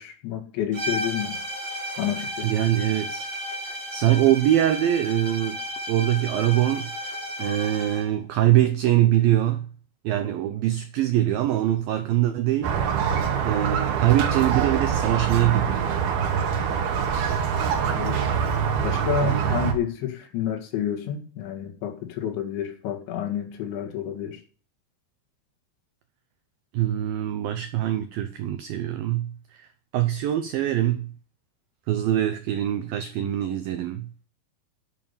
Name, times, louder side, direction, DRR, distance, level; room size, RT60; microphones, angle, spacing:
voice 1, 0.0-1.4 2.0-2.5 17.9-18.3 18.8-24.4, left 10 dB, 80° left, 4.3 m, -30 dB
sound 1, 0.7-8.1, equal, 35° right, 1.1 m, -33 dB
voice 2, 2.4-3.3 3.7-5.6 5.9-9.7 10.0-16.0 19.3-19.7 26.7-31.1 31.9-34.1, right 13 dB, 85° right, 2.1 m, -23 dB
Squeak, 12.6-19.7, right 7 dB, 60° right, 3.5 m, -24 dB
11.0 x 7.4 x 7.0 m
omnidirectional pair, 5.3 m